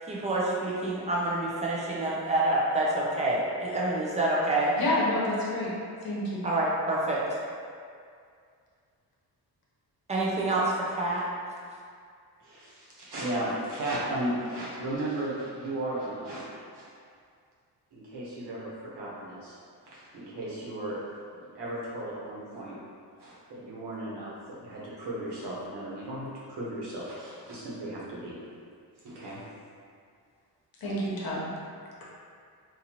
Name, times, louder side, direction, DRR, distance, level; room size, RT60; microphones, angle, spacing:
voice 1, 0.0-4.7 6.4-7.2 10.1-11.2, right 2 dB, 15° right, -5 dB, 0.5 m, -27 dB
voice 2, 4.8-5.7 6.0-6.2 30.8-31.4, left 1 dB, 60° left, -6 dB, 1.0 m, -28 dB
voice 3, 12.4-16.4 16.7-16.9 17.9-19.6 19.8-21.0 21.3-22.8 23.2-28.4 29.0-29.4, right 1 dB, 75° right, -7 dB, 1.2 m, -35 dB
4.0 x 2.6 x 2.9 m, 2.3 s
wide cardioid pair, 160°, 40 cm